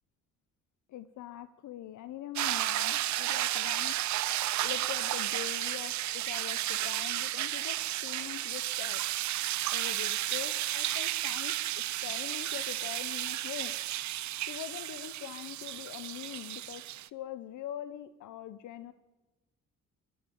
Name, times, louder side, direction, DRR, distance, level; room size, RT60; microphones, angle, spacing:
voice 1, 0.9-4.0 4.6-9.0 9.3-9.4 9.7-13.7 14.4-18.9, left 12 dB, 75° left, 13 dB, 0.9 m, -43 dB
sound 1, 2.4-17.1, right 14 dB, 70° right, 0.6 m, -33 dB
20.5 x 14.0 x 9.2 m, 1.1 s
cardioid pair, 90°, 30 cm